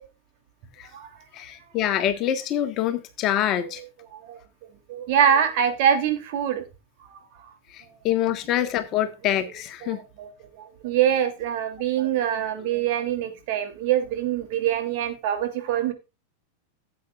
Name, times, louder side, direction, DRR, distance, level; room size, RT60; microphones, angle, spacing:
voice 1, 1.3-3.8 7.7-10.0, left 11 dB, 35° left, 1.5 m, -25 dB
voice 2, 4.9-6.6 7.0-7.2 9.8-10.3 10.6-15.9, right 9 dB, 50° right, 3.1 m, -24 dB
16.5 x 8.5 x 2.5 m
figure-of-eight pair, 90°, 0 cm